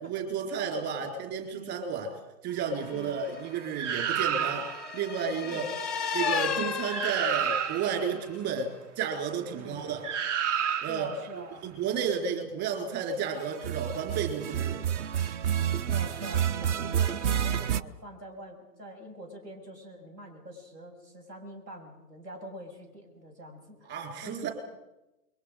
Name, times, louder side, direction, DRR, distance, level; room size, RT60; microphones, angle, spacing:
voice 1, 0.0-2.2 2.4-5.6 6.1-10.1 10.8-11.1 11.6-14.9 23.9-24.5, right 6 dB, 30° right, 4 dB, 4.1 m, -32 dB
voice 2, 1.5-1.8 2.9-3.2 5.4-5.8 9.5-9.9 10.8-11.7 15.7-23.9 24.2-24.5, equal, 85° right, 3 dB, 6.9 m, -45 dB
sound 1, 2.7-8.2, left 6 dB, ahead, 0.7 m, -35 dB
sound 2, 3.8-4.9 6.6-6.7 6.9-8.1 10.0-11.2 13.5-17.8, right 9 dB, 50° right, 0.8 m, -29 dB
28.5 x 22.5 x 5.1 m, 0.96 s
hypercardioid pair, 125°, 48 cm